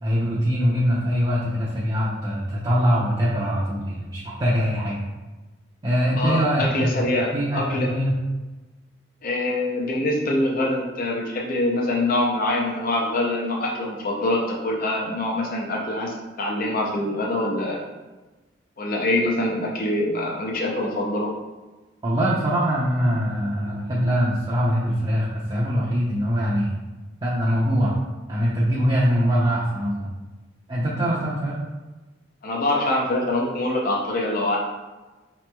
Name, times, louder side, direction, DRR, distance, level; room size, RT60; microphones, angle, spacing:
voice 1, 0.0-5.0 5.8-7.0 7.3-8.2 22.0-26.8 27.2-27.9 28.3-30.1 30.7-31.6, equal, 25° right, -6 dB, 0.5 m, -23 dB
voice 2, 6.2-7.9 9.2-17.8 18.8-21.3 32.4-34.6, left 1 dB, 50° left, -1 dB, 0.5 m, -24 dB
4.9 x 2.9 x 2.2 m, 1.2 s
head